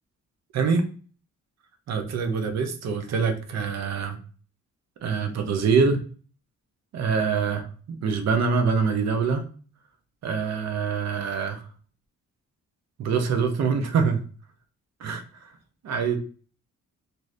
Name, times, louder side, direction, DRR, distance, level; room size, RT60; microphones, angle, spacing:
voice 1, 0.5-0.9 1.9-4.2 5.0-6.0 6.9-9.4 10.2-11.7 13.0-14.2 15.0-15.5 15.8-16.2, right 5 dB, 60° right, 6 dB, 0.6 m, -25 dB
2.6 x 2.5 x 3.1 m, 0.40 s
wide cardioid pair, 170°, 31 cm